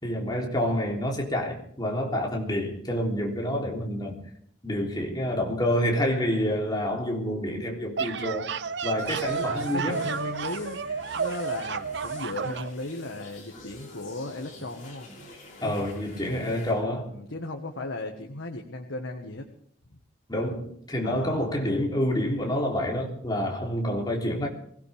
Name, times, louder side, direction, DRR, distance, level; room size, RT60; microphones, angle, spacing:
voice 1, 0.0-4.2 4.6-8.5 8.8-10.0 15.6-17.1 20.3-24.5, equal, 20° left, -1 dB, 3.5 m, -28 dB
sound 1, 7.7-12.7, right 5 dB, 60° right, 0.7 m, -31 dB
sound 2, 9.0-16.7, left 2 dB, 40° left, 5.9 m, -48 dB
voice 2, 9.3-10.8 11.1-15.1 15.6-15.9 17.1-19.5 21.0-21.4, left 2 dB, 80° left, 3 dB, 1.7 m, -36 dB
23.0 x 17.5 x 3.6 m, 0.65 s
head